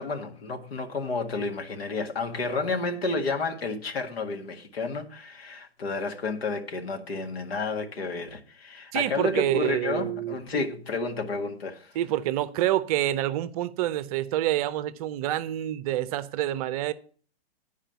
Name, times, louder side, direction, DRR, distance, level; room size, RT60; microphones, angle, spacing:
voice 1, 0.0-11.9, left 3 dB, 70° left, 1.9 m, -31 dB
voice 2, 8.9-10.6 11.9-16.9, right 13 dB, 35° right, 0.6 m, -27 dB
10.0 x 4.9 x 6.9 m
figure-of-eight pair, 115°, 31 cm